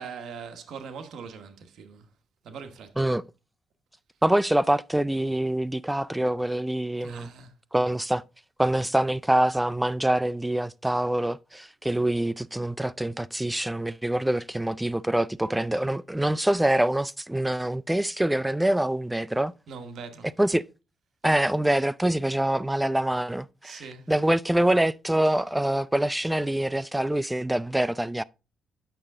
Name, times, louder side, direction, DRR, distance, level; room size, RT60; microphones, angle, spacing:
voice 1, 0.0-2.1 2.4-3.1 7.0-7.5 19.7-20.3 23.6-24.1, right 5 dB, 75° right, 1.2 m, -41 dB
voice 2, 4.2-7.3 7.7-8.2 8.6-19.5 20.4-20.7 21.2-28.2, right 1 dB, 5° right, 0.3 m, -25 dB
8.9 x 6.4 x 3.6 m
cardioid pair, 105°, 0 cm